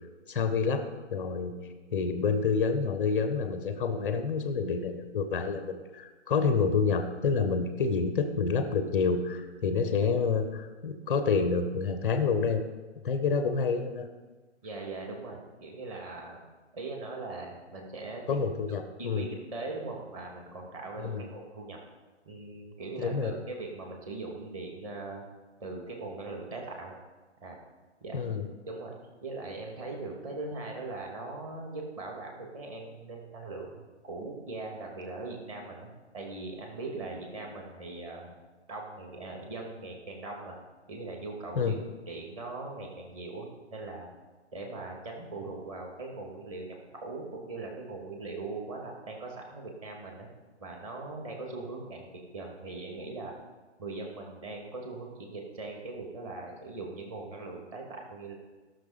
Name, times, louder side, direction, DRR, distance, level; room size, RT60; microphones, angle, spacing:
voice 1, 0.3-1.5 1.9-12.6 13.0-14.1 18.3-19.3 21.0-21.3 23.0-23.3 28.1-28.5 41.5-41.8, left 5 dB, ahead, 8 dB, 0.5 m, -28 dB
voice 2, 14.6-16.4 16.7-18.2 18.7-21.8 22.2-25.2 25.6-26.9 27.4-27.6 28.0-28.2 28.7-29.0 29.2-38.3 38.7-40.6 40.9-41.8 42.1-44.1 44.5-50.3 50.6-52.1 52.3-53.3 53.8-58.3, right 3 dB, 30° right, 0 dB, 2.5 m, -40 dB
16.5 x 6.5 x 5.2 m, 1.3 s
figure-of-eight pair, 140°, 35 cm